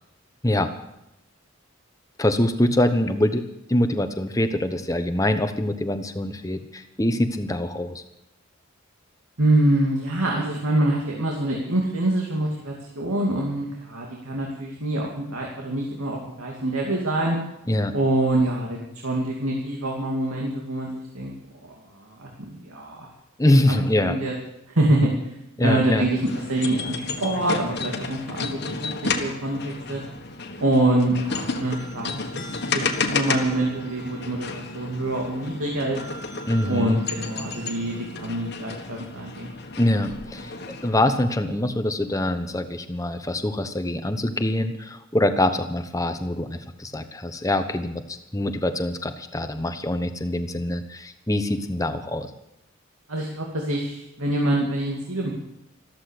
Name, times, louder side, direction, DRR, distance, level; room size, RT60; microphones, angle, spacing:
voice 1, 2.2-3.4 3.7-8.0 17.7-17.9 23.4-24.1 25.6-26.0 36.5-37.0 39.8-40.5 40.8-48.0 48.3-52.3, left 1 dB, 15° left, 8 dB, 1.0 m, -24 dB
voice 2, 9.4-17.4 17.9-23.1 23.4-24.3 24.7-25.1 25.6-30.0 30.6-36.0 36.7-39.5 53.1-55.3, right 1 dB, 85° right, -1 dB, 2.6 m, -25 dB
sound 1, 26.0-41.2, left 4 dB, 50° left, 1.6 m, -32 dB
14.0 x 13.5 x 6.7 m, 0.86 s
head